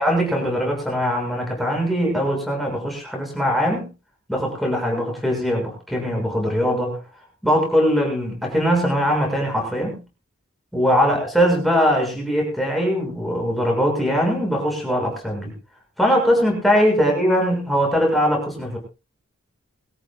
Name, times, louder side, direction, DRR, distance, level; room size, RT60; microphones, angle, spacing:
voice 1, 0.0-3.9 4.3-7.0 7.4-10.0 10.7-15.5 16.0-18.8, equal, ahead, 0 dB, 6.5 m, -21 dB
23.0 x 14.0 x 2.4 m, 0.31 s
head